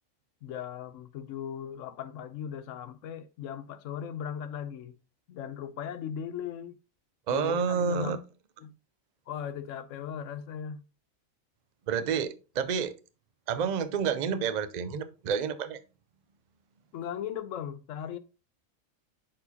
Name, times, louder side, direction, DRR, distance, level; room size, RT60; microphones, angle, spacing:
voice 1, 0.4-5.0 5.3-6.7 7.3-8.2 8.6-8.7 9.3-10.8 16.9-18.2, left 8 dB, 70° left, 0.9 m, -38 dB
voice 2, 7.3-8.2 11.9-12.9 13.5-15.8, right 6 dB, 50° right, 0.5 m, -29 dB
8.6 x 4.6 x 2.8 m
omnidirectional pair, 1.4 m